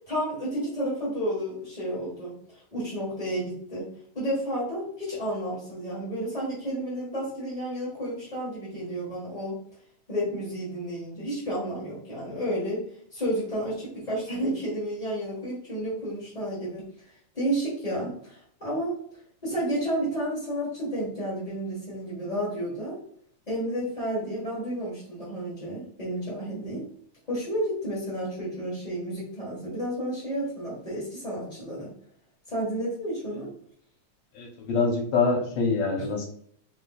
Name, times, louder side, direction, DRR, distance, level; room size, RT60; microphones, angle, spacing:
voice 1, 0.1-2.3 2.7-9.6 10.1-16.8 17.3-19.0 19.4-23.0 23.5-26.9 27.3-31.9 32.5-33.5 36.0-36.1, right 1 dB, 30° left, -7 dB, 0.8 m, -31 dB
voice 2, 34.4-36.3, left 4 dB, 70° left, 1 dB, 2.1 m, -25 dB
4.5 x 4.4 x 2.4 m, 0.63 s
omnidirectional pair, 3.3 m